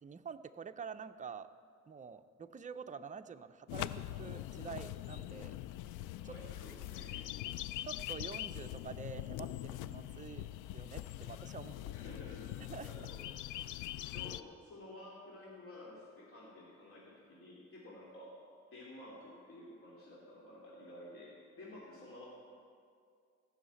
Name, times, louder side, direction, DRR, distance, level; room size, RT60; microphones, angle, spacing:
voice 1, 0.0-1.5 1.9-5.5 6.2-6.4 7.9-10.5 10.7-11.9 12.7-13.1, right 6 dB, 25° right, 8 dB, 0.5 m, -47 dB
sound 1, 3.7-14.4, left 14 dB, 85° left, 0.5 m, -43 dB
voice 2, 6.2-7.2 11.9-12.5 12.8-13.4 13.7-13.9 14.1-18.4 18.7-22.3, left 1 dB, 45° left, -5 dB, 2.7 m, -52 dB
15.5 x 6.4 x 8.3 m, 2.3 s
cardioid pair, 90°, 30 cm